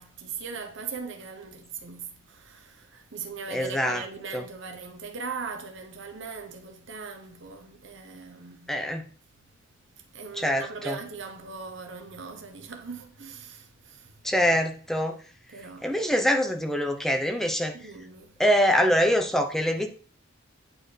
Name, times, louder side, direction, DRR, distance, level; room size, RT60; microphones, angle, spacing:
voice 1, 0.0-8.7 10.0-14.1 15.5-15.9 17.7-18.4, right 5 dB, 65° right, 0.9 m, -40 dB
voice 2, 3.5-4.0 4.3-4.4 8.7-9.0 10.4-11.0 14.2-15.2 15.8-17.7 18.4-19.9, equal, ahead, 0.7 m, -24 dB
8.8 x 4.5 x 3.3 m
head